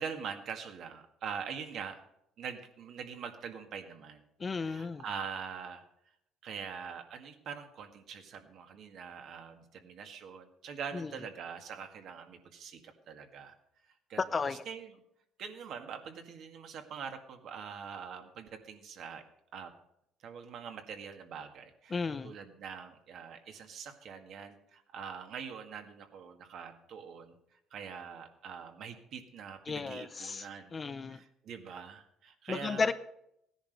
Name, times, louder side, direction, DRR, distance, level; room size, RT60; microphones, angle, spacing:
voice 1, 0.0-2.0 2.4-4.2 4.6-5.9 6.4-13.6 14.1-14.9 15.4-19.2 19.5-19.7 20.2-27.4 27.7-30.8 31.1-32.9, right 6 dB, 55° right, 6 dB, 1.9 m, -44 dB
voice 2, 4.4-5.0 10.9-11.1 14.2-14.6 21.9-22.3 29.7-31.2 32.5-32.9, left 4 dB, 25° left, 12 dB, 0.5 m, -34 dB
17.0 x 10.5 x 5.3 m, 0.78 s
cardioid pair, 150°, 0 cm